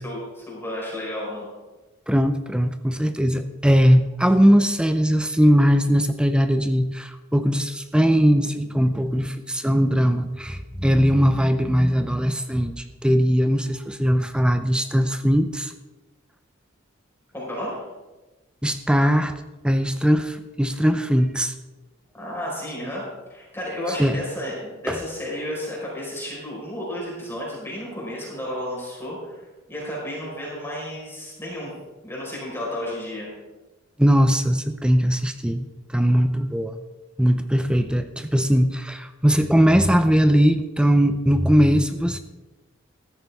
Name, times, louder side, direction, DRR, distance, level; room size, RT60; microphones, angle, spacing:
voice 1, 0.0-1.5 17.3-17.8 22.2-31.7 32.0-33.3, left 1 dB, 10° left, -5 dB, 4.6 m, -32 dB
voice 2, 2.1-15.7 18.6-19.3 19.6-21.5 24.0-24.2 24.9-25.0 34.0-36.8 37.2-42.2, equal, 5° right, 9 dB, 0.5 m, -20 dB
14.5 x 13.5 x 3.5 m, 1.1 s
head